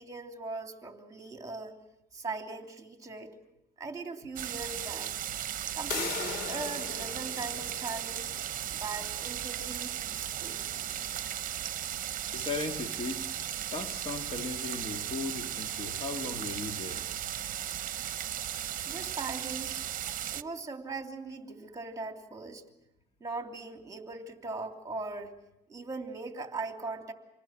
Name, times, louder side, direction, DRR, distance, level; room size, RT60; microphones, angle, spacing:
voice 1, 0.0-1.8 2.1-3.3 3.8-5.1 5.7-8.3 8.7-10.6 18.9-19.8 20.3-22.6 23.2-25.4 25.7-27.1, right 3 dB, 20° right, 2.9 m, -40 dB
sound 1, 4.4-20.4, right 11 dB, 50° right, 0.9 m, -36 dB
sound 2, 5.9-11.5, left 5 dB, 70° left, 3.2 m, -41 dB
voice 2, 12.3-17.3, left 3 dB, 35° left, 2.0 m, -38 dB
27.0 x 19.5 x 7.5 m
cardioid pair, 110°, 17 cm